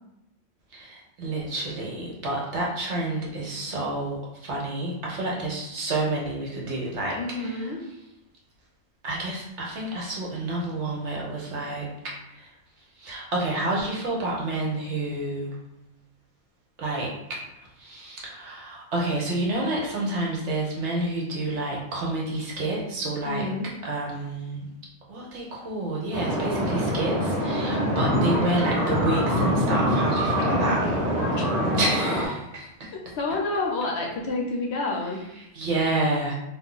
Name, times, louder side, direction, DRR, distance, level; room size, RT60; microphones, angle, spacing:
voice 1, 0.7-7.7 9.0-12.5 13.0-15.5 16.8-17.1 17.8-23.5 23.8-24.7 25.1-30.8 31.7-32.9 35.5-36.4, right 2 dB, 65° right, -3 dB, 1.1 m, -29 dB
voice 2, 7.2-7.8 23.2-23.7 30.3-31.0 31.3-31.7 32.9-35.2, left 2 dB, 65° left, -1 dB, 0.8 m, -29 dB
sound 1, 26.1-32.3, equal, 35° right, 1.2 m, -24 dB
2.6 x 2.4 x 3.7 m, 0.89 s
omnidirectional pair, 1.3 m